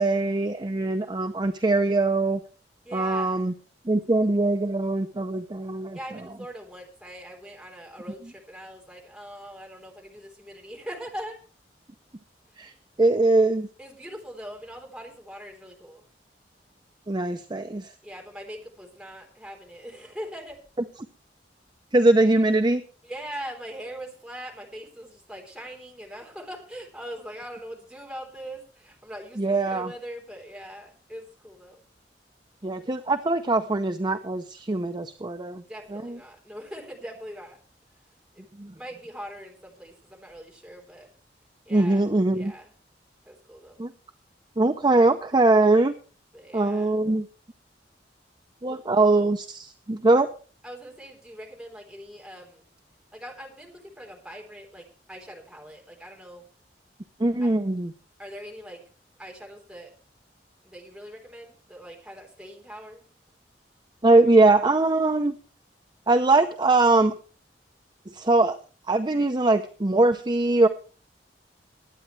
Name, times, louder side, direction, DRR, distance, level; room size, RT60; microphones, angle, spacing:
voice 1, 0.0-2.4 2.9-3.5 3.9-6.0 12.6-12.7 13.0-13.7 17.1-17.9 21.9-22.8 29.4-29.9 32.6-35.6 35.9-36.2 38.6-38.7 41.7-42.5 43.8-43.9 44.6-45.9 46.5-47.3 48.6-50.3 57.2-57.9 64.0-65.3 66.1-67.1 68.1-68.6 68.9-70.7, right 2 dB, 25° right, 7 dB, 0.7 m, -22 dB
voice 2, 2.8-3.5 5.9-11.4 12.5-13.1 13.8-16.0 18.0-20.6 23.0-31.8 35.7-37.6 38.3-38.5 38.7-41.1 41.7-42.1 42.3-42.7 43.2-43.9 46.3-46.9 48.7-48.8 50.6-52.6 53.1-56.4 57.4-57.5 58.2-58.8 59.2-59.9 60.6-63.0, equal, 5° right, 1 dB, 3.6 m, -41 dB
21.5 x 9.1 x 3.2 m, 0.40 s
head